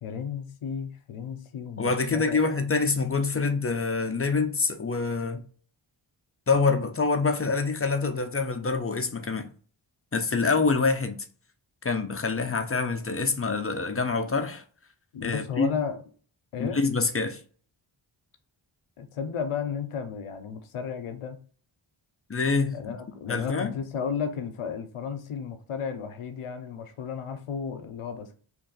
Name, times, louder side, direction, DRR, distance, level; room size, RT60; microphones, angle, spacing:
voice 1, 0.0-2.4 15.1-16.0 16.5-16.8 19.0-21.4 22.7-28.3, left 6 dB, 85° left, 0.7 m, -33 dB
voice 2, 1.8-5.4 6.5-9.5 10.1-11.3 11.8-14.6 15.2-15.7 16.6-17.4 22.3-23.0 23.3-23.7, left 4 dB, 30° left, 0.5 m, -26 dB
3.1 x 2.6 x 3.9 m
cardioid pair, 55°, 50 cm